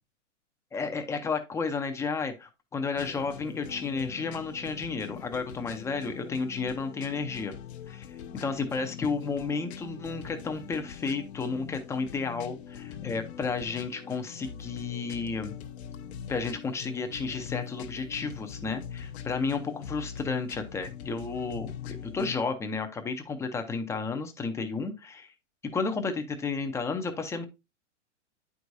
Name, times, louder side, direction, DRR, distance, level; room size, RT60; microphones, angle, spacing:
voice 1, 0.7-7.5 7.9-15.5 16.3-25.3 25.7-27.4, left 4 dB, 10° left, 6 dB, 0.5 m, -32 dB
sound 1, 3.0-22.4, left 8 dB, 60° left, 0.8 m, -42 dB
9.1 x 4.8 x 2.6 m, 0.24 s
hypercardioid pair, 130°, 37 cm